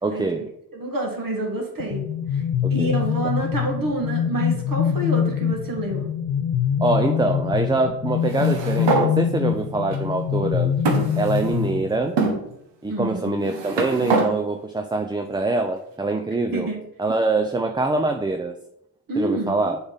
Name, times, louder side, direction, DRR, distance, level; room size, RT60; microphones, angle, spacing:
voice 1, 0.0-0.5 2.6-2.9 6.8-10.7 11.2-12.2 12.8-16.7 17.0-18.6 19.2-19.8, right 3 dB, 10° right, 5 dB, 0.4 m, -24 dB
voice 2, 0.7-2.0 2.3-2.4 2.7-6.1 12.9-13.3 16.5-16.8 19.1-19.6, right 1 dB, 50° right, 0 dB, 1.8 m, -27 dB
sound 1, 1.8-12.3, left 8 dB, 90° left, 0.6 m, -24 dB
sound 2, 8.2-9.1 9.9-10.0 10.8-11.7 12.2-12.4 13.2-14.3, right 3 dB, 75° right, 1.3 m, -24 dB
6.8 x 4.0 x 4.0 m, 0.77 s
cardioid pair, 60°, 42 cm